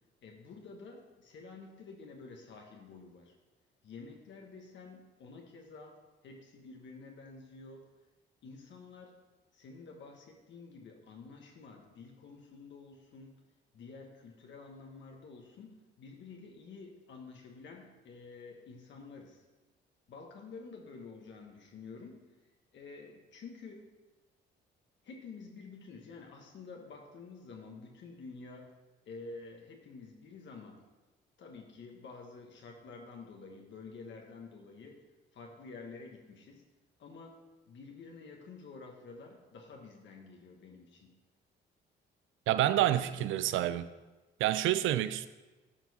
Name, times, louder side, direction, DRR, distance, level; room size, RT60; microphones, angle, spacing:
voice 1, 0.2-3.3 3.8-7.9 8.4-9.2 9.5-13.4 13.7-19.4 20.1-22.3 22.7-23.9 25.0-28.8 29.0-30.8 31.4-35.0 35.3-36.6 37.0-41.1 42.9-43.3, left 4 dB, 65° left, 1.2 m, -50 dB
voice 2, 42.5-43.9 44.4-45.3, right 13 dB, 80° right, 0.5 m, -28 dB
11.5 x 4.5 x 4.1 m
cardioid pair, 90°, 20 cm